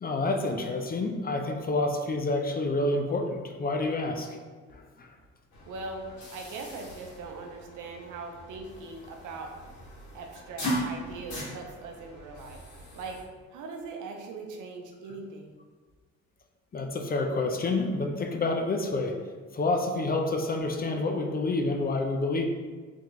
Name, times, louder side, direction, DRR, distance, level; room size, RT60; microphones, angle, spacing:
voice 1, 0.0-4.3 4.7-5.1 16.7-19.1 19.5-22.5, left 2 dB, 30° left, 3 dB, 0.5 m, -28 dB
sound 1, 5.5-13.2, equal, 75° left, 1.5 m, -39 dB
voice 2, 5.7-9.5 10.1-12.6 12.9-13.2 13.5-15.5, right 3 dB, 80° right, 3 dB, 0.7 m, -40 dB
3.5 x 3.4 x 3.1 m, 1.5 s
cardioid pair, 90°, 30 cm